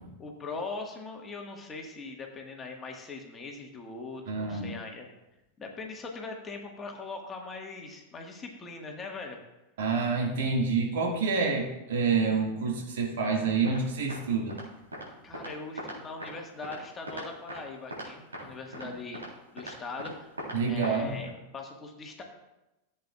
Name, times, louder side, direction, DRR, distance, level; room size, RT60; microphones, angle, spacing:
voice 1, 0.2-5.1 5.6-9.4 15.2-19.2 19.5-20.3 20.7-22.2, left 3 dB, 20° left, 1 dB, 1.6 m, -41 dB
voice 2, 4.3-4.7 9.8-14.6 18.4-18.5 18.8-18.9 20.5-21.2, right 4 dB, 55° right, 1 dB, 1.9 m, -28 dB
sound 1, 13.6-13.8 14.1-14.2 14.5-14.6 14.9-15.1 15.3-15.5 15.8-16.3 16.6-16.8 17.1-17.6 17.9-18.1 18.3-18.4 18.7-18.9 19.1-19.3 19.6-19.7 20.0-20.1 20.4-20.6 20.8-21.0 21.3-21.4, equal, 75° right, 3.4 m, -39 dB
14.5 x 8.0 x 2.4 m, 0.96 s
figure-of-eight pair, 90°, 0 cm